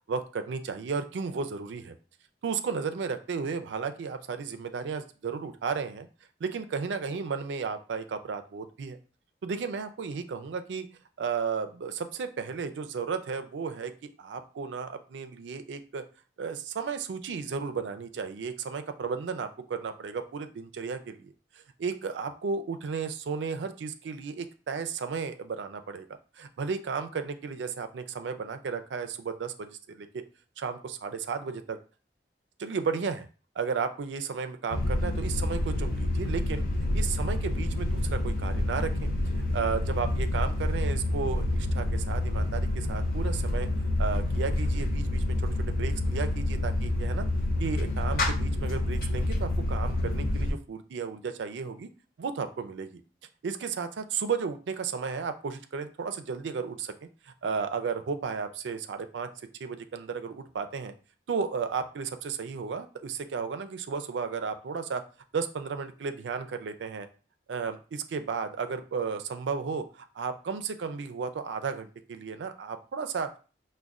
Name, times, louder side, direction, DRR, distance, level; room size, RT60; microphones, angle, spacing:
voice 1, 0.1-1.9 2.4-6.1 6.4-9.0 9.4-10.9 11.2-16.0 16.4-21.3 21.8-26.1 26.4-30.2 30.6-31.8 32.6-33.3 33.6-36.6 36.9-39.1 39.4-43.7 44.0-47.3 47.6-51.9 52.2-53.0 53.4-56.9 57.3-59.3 59.6-60.9 61.3-65.0 65.3-67.1 67.5-73.4, right 5 dB, 85° right, 9 dB, 0.4 m, -34 dB
sound 1, 34.7-50.5, left 1 dB, 50° left, 0.5 m, -28 dB
5.1 x 2.1 x 2.4 m, 0.37 s
head